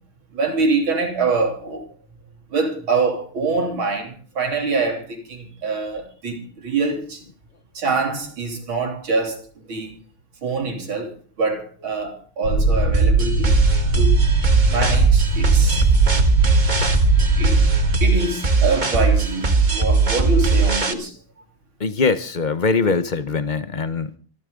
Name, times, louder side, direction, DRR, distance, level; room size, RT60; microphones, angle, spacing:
voice 1, 0.3-1.8 2.5-7.2 7.7-9.4 9.7-10.0 10.4-13.6 14.0-14.2 14.7-15.9 17.4-17.6 18.0-21.1, right 3 dB, 75° right, 4.0 m, -24 dB
sound 1, 12.4-18.0, right 2 dB, 55° left, 3.9 m, -20 dB
sound 2, 12.9-20.9, right 4 dB, 25° right, 1.4 m, -19 dB
voice 2, 21.8-24.2, left 4 dB, 40° left, 0.7 m, -22 dB
26.0 x 13.0 x 3.9 m
omnidirectional pair, 2.2 m